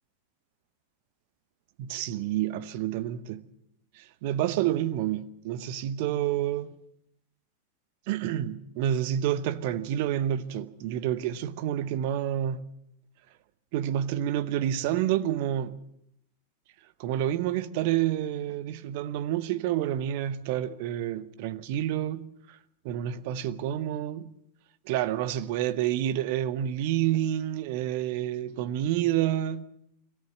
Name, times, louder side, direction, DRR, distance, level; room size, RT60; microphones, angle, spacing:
voice 1, 1.8-3.5 3.9-6.7 8.1-12.6 13.7-15.8 17.0-22.6 22.8-24.3 24.8-29.6, right 11 dB, 50° right, 0.9 m, -29 dB
22.5 x 17.0 x 7.7 m
figure-of-eight pair, 90°, 0 cm